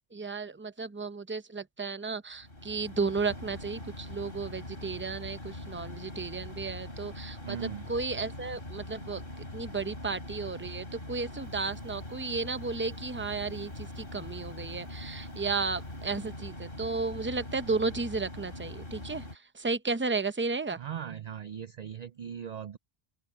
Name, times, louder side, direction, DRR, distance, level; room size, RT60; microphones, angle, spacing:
voice 1, 0.1-20.8, right 4 dB, 15° right, 0.6 m, -34 dB
sound 1, 2.3-19.4, left 1 dB, 55° left, 3.7 m, -42 dB
voice 2, 7.4-7.9 20.8-22.8, right 8 dB, 55° right, 0.5 m, -39 dB
Wind, 11.3-16.4, right 3 dB, 80° right, 3.8 m, -64 dB
open air
omnidirectional pair, 1.1 m